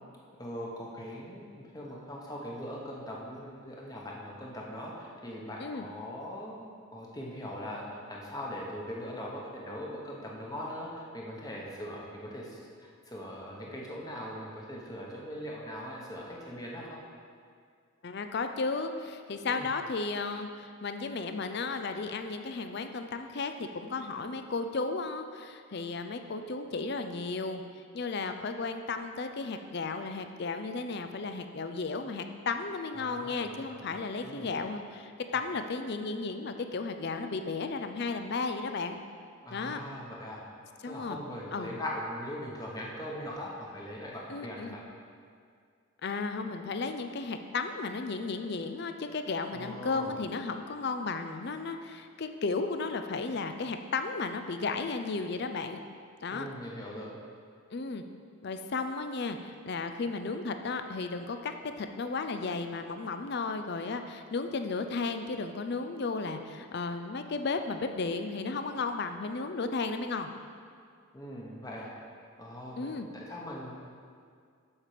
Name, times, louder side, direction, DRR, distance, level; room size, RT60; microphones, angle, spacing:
voice 1, 0.4-1.4 1.7-17.0 19.5-19.7 33.0-34.5 39.4-40.5 40.8-44.8 49.5-50.1 56.3-57.2 71.1-71.9 72.4-73.7, equal, 15° left, -3 dB, 1.1 m, -41 dB
voice 2, 18.0-27.6 27.9-39.0 39.5-39.8 40.8-41.2 41.5-41.7 44.3-44.8 46.0-55.8 56.2-56.5 57.7-58.0 58.4-70.3 72.8-73.1, left 4 dB, 50° left, 7 dB, 0.5 m, -34 dB
7.2 x 6.7 x 5.0 m, 2.2 s
head